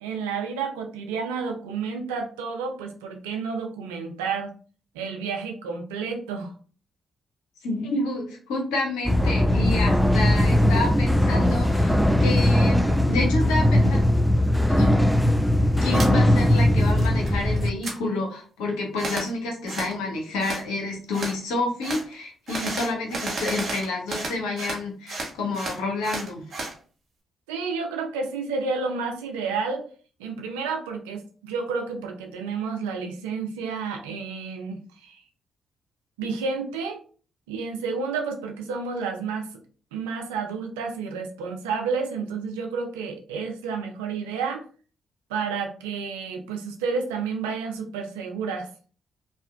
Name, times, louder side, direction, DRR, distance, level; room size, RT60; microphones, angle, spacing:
voice 1, 0.0-4.5 4.9-6.5 27.5-29.9 30.2-35.2 36.2-37.0 37.5-39.5 39.9-44.7 45.3-48.7, right 5 dB, 85° right, 3 dB, 0.3 m, -30 dB
voice 2, 7.6-14.0 14.7-14.9 15.8-26.4, left 2 dB, 80° left, 0 dB, 0.7 m, -29 dB
sound 1, 9.1-17.7, left 1 dB, ahead, 0.3 m, -20 dB
sound 2, 15.9-16.1 16.5-17.3 17.6-18.0 19.0-19.3 19.7-19.9 20.4-20.6 21.1-21.4 21.8-22.0 22.5-24.8 25.1-26.7, right 2 dB, 55° right, 0.7 m, -32 dB
2.7 x 2.1 x 2.2 m, 0.41 s
hypercardioid pair, 40°, 0 cm